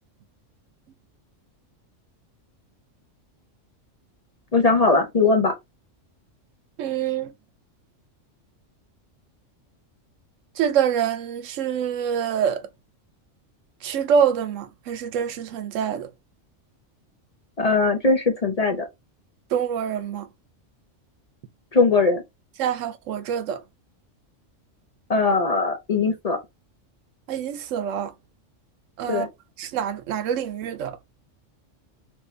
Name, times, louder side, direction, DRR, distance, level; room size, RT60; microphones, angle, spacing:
voice 1, 4.5-5.5 17.6-18.9 21.7-22.2 25.1-26.4 29.1-29.3, left 3 dB, 40° left, 0.6 m, -20 dB
voice 2, 6.8-7.3 10.6-12.6 13.8-16.1 19.5-20.3 22.6-23.6 27.3-28.1 29.0-29.3 29.6-31.0, right 8 dB, 85° right, 0.9 m, -25 dB
3.0 x 2.6 x 3.2 m
omnidirectional pair, 1.3 m